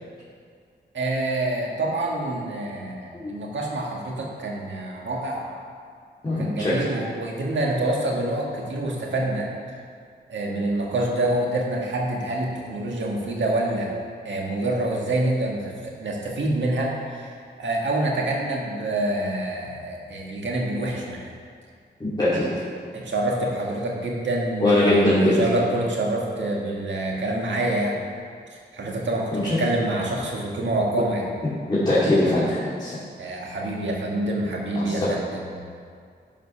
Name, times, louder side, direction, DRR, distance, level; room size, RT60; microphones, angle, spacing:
voice 1, 0.9-5.5 6.3-9.5 10.3-13.9 14.2-21.3 22.9-28.0 28.7-31.3 33.2-35.6, right 1 dB, 85° right, -1 dB, 1.7 m, -26 dB
voice 2, 6.2-6.9 22.0-22.5 24.6-25.4 29.3-29.6 31.7-33.0 34.7-35.1, left 1 dB, 25° left, -11 dB, 2.5 m, -21 dB
10.5 x 5.3 x 5.6 m, 2.2 s
wide cardioid pair, 80°, 19 cm